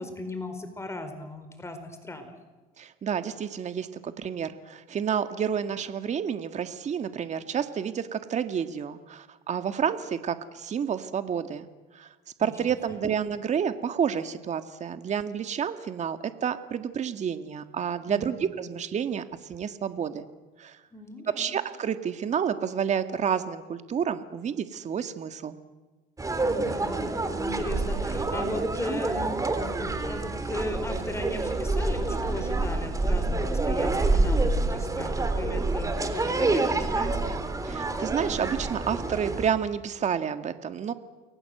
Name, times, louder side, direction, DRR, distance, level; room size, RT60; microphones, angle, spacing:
voice 1, 0.0-2.3 12.4-12.5 12.9-13.0 18.1-18.4 20.9-21.5 26.4-37.4, left 1 dB, 15° left, 7 dB, 4.6 m, -37 dB
voice 2, 2.8-11.7 11.9-12.1 12.4-20.3 20.6-20.8 21.3-25.6 37.6-40.9, right 7 dB, 40° right, 9 dB, 1.9 m, -30 dB
sound 1, 26.2-39.5, right 2 dB, 20° right, 3.5 m, -27 dB
29.5 x 22.0 x 8.0 m, 1.2 s
supercardioid pair, 105°, 18 cm